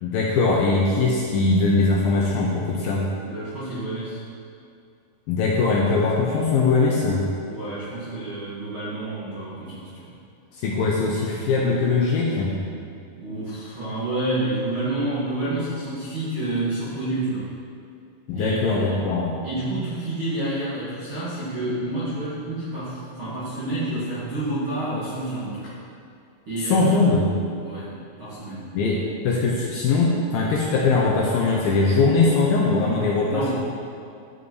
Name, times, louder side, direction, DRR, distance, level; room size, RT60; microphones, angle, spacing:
voice 1, 0.0-3.0 5.3-7.2 10.5-12.5 18.3-19.3 26.6-27.3 28.7-33.5, left 3 dB, 80° left, -3 dB, 2.1 m, -21 dB
voice 2, 3.2-4.2 7.5-10.1 13.1-17.5 18.3-19.2 19.4-25.8 26.5-26.9 27.6-28.7 33.3-33.5, right 1 dB, 45° right, -12 dB, 1.8 m, -29 dB
14.0 x 5.5 x 4.7 m, 2.4 s
omnidirectional pair, 5.4 m